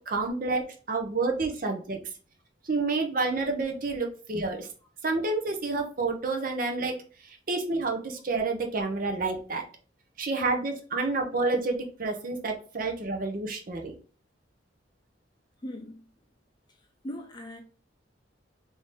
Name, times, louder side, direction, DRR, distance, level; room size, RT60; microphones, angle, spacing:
voice 1, 0.0-2.0 2.6-4.7 5.0-7.0 7.2-9.6 10.2-13.9, right 3 dB, 45° right, 0.7 m, -29 dB
voice 2, 15.6-16.0 17.0-17.6, left 1 dB, 20° left, 0.5 m, -39 dB
3.7 x 2.7 x 3.2 m
head